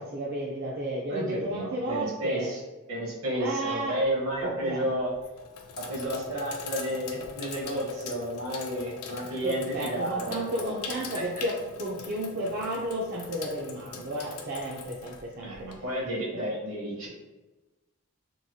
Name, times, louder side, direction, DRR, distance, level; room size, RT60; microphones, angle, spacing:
voice 1, 0.0-2.5 3.4-4.0 4.4-4.9 9.4-15.7 16.3-16.4, right 1 dB, 45° right, -4 dB, 0.4 m, -33 dB
voice 2, 1.1-2.6 2.9-5.1 5.9-10.7 11.1-11.2 15.4-17.1, equal, 70° right, -4 dB, 1.0 m, -31 dB
Sink (filling or washing), 4.1-4.5 5.1-16.0, left 5 dB, 90° left, 0.4 m, -41 dB
3.0 x 2.2 x 2.7 m, 1.1 s
head